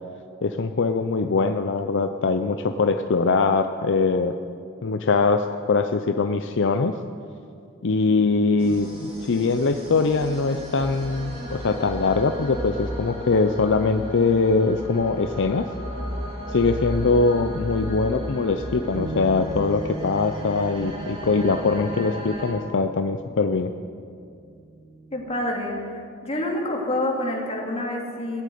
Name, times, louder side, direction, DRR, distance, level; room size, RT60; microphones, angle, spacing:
voice 1, 0.4-4.3 4.8-7.0 7.8-15.7 16.5-23.7, left 4 dB, 60° left, 7 dB, 0.6 m, -22 dB
sound 1, 8.6-22.5, equal, 25° right, 3.1 m, -35 dB
Bass guitar, 18.9-25.2, right 2 dB, 70° right, 1.5 m, -38 dB
voice 2, 25.1-25.9 26.2-28.4, left 1 dB, 30° left, -1 dB, 2.5 m, -27 dB
17.0 x 8.3 x 9.4 m, 2.4 s
head